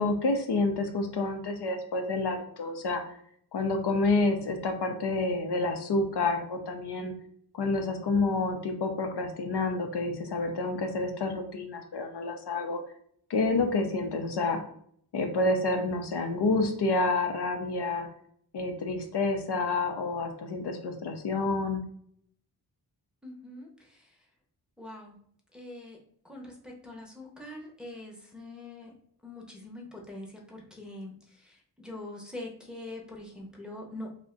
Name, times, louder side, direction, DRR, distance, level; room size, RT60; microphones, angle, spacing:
voice 1, 0.0-3.0 3.5-7.1 7.5-12.8 13.3-14.6 15.1-18.1 18.5-21.8, left 3 dB, 75° left, 5 dB, 0.6 m, -28 dB
voice 2, 23.2-24.2 24.8-25.2 25.5-26.0 26.2-28.9 29.2-34.1, left 1 dB, ahead, -2 dB, 0.6 m, -43 dB
2.4 x 2.1 x 3.7 m, 0.63 s
wide cardioid pair, 75°, 40 cm